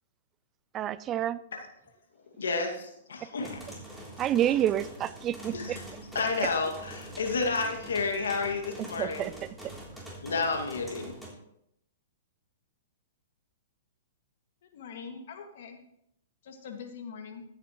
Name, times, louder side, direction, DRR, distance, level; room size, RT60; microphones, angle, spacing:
voice 1, 0.7-1.4 3.2-3.3 4.2-5.8 9.0-9.3, right 11 dB, 25° right, 18 dB, 0.4 m, -28 dB
voice 2, 2.4-3.6 5.5-5.8 6.1-9.3 10.2-11.1, left 4 dB, 85° left, 3 dB, 2.2 m, -30 dB
sound 1, 3.4-11.3, right 1 dB, ahead, 3.3 m, -44 dB
voice 3, 14.6-15.8 16.4-17.4, left 6 dB, 65° left, 4 dB, 2.1 m, -43 dB
14.5 x 9.0 x 3.1 m, 0.74 s
hypercardioid pair, 130°, 0 cm